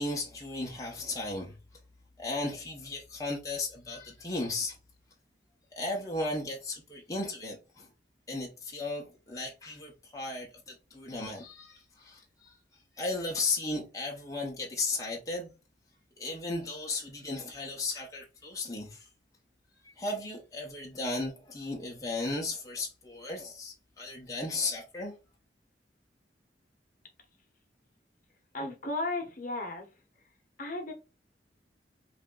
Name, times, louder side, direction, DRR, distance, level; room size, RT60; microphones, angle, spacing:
voice 1, 0.0-1.6 2.2-4.8 5.8-7.9 8.3-12.6 13.0-15.5 16.2-19.1 20.0-25.1, left 2 dB, 20° left, 0.8 m, -35 dB
voice 2, 28.5-29.9 30.6-30.9, left 2 dB, 50° left, 0.9 m, -34 dB
3.4 x 2.5 x 3.7 m
head